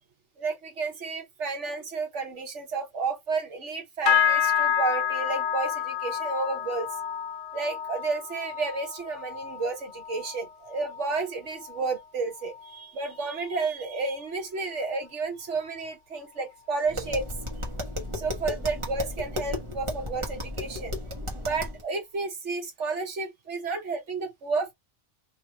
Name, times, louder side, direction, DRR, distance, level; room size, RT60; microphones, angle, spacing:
voice 1, 0.4-6.9 7.5-17.3 18.1-20.9 21.3-24.7, right 4 dB, 75° right, 1.5 m, -31 dB
sound 1, 4.1-13.6 13.9-14.3 14.7-15.1 15.6-15.7, left 8 dB, 85° left, 1.2 m, -30 dB
Tap, 16.9-21.8, left 1 dB, 25° right, 1.2 m, -34 dB
3.3 x 2.8 x 2.9 m
omnidirectional pair, 1.2 m